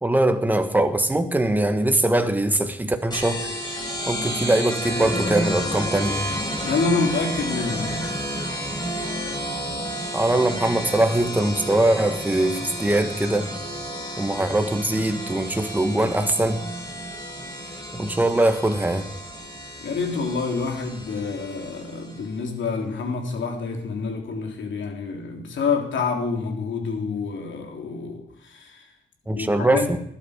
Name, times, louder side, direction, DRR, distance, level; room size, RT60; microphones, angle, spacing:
voice 1, 0.0-3.5 4.1-6.3 10.1-13.5 14.2-16.7 18.0-19.1 29.3-30.0, right 1 dB, 10° right, 1.4 m, -22 dB
sound 1, 3.1-22.3, equal, 20° left, 6.7 m, -31 dB
voice 2, 6.6-8.1 19.8-28.8 29.3-29.9, left 4 dB, 75° left, 3.3 m, -27 dB
20.5 x 11.5 x 5.1 m
wide cardioid pair, 150°, 19 cm